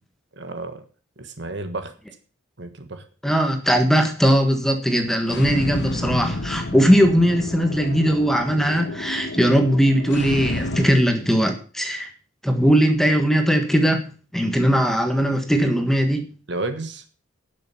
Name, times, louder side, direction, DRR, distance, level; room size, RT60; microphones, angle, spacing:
voice 1, 0.4-0.8 1.2-1.9 2.6-3.0 16.5-17.0, right 2 dB, 60° right, 8 dB, 1.4 m, -31 dB
voice 2, 3.2-12.1 12.4-14.0 14.3-16.3, equal, ahead, 5 dB, 1.4 m, -19 dB
sound 1, 5.3-10.9, left 1 dB, 60° left, 1.1 m, -29 dB
11.5 x 6.6 x 7.1 m, 0.39 s
head